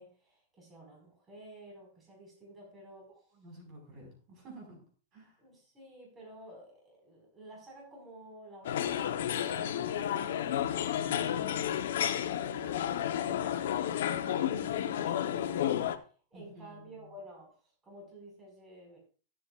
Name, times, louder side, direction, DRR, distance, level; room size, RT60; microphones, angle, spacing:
voice 1, 0.0-3.1 5.4-12.0 12.4-19.0, right 1 dB, 15° right, -2 dB, 5.2 m, -52 dB
voice 2, 3.4-4.8 5.1-5.3 16.3-16.9, right 2 dB, 40° right, 0 dB, 5.0 m, -51 dB
sound 1, 8.6-16.0, left 10 dB, 75° left, 1.0 m, -31 dB
16.0 x 8.0 x 2.5 m, 0.39 s
supercardioid pair, 145°, 0 cm